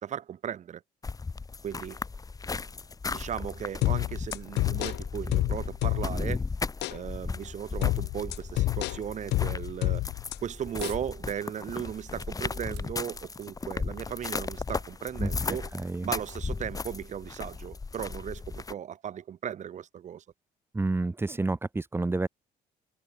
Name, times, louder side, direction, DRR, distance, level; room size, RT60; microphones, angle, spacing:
voice 1, 0.0-0.8 1.6-2.0 3.1-6.4 6.9-10.0 10.4-15.7 16.0-20.2, right 9 dB, 45° right, 1.2 m, -36 dB
sound 1, 1.0-18.7, left 4 dB, 20° left, 1.6 m, -36 dB
sound 2, 3.8-6.3 6.8-7.0 7.8-10.4 10.8-11.0, left 18 dB, 85° left, 1.6 m, -29 dB
sound 3, 10.8-11.1 11.5-11.6 12.2-13.9 14.7-14.8 15.1-15.2, right 20 dB, 90° right, 3.0 m, -49 dB
voice 2, 15.7-16.1 20.7-22.3, right 3 dB, 15° right, 1.3 m, -29 dB
cardioid pair, 110°, 17 cm